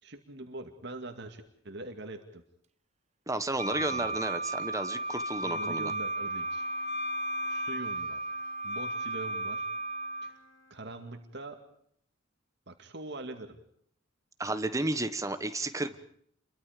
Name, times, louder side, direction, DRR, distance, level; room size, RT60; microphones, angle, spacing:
voice 1, 0.0-2.4 3.6-4.2 5.4-6.7 7.4-8.3 8.6-9.7 10.2-10.4 10.7-11.6 12.7-13.6, right 2 dB, 60° right, 5 dB, 2.3 m, -43 dB
voice 2, 3.3-5.9 14.4-16.0, right 2 dB, 15° right, 11 dB, 1.2 m, -32 dB
Wind instrument woodwind instrument, 3.6-10.3, right 1 dB, 35° right, 0.9 m, -34 dB
Bowed string instrument, 4.9-11.3, left 3 dB, 80° left, 8.0 m, -57 dB
29.5 x 23.5 x 5.1 m, 0.66 s
head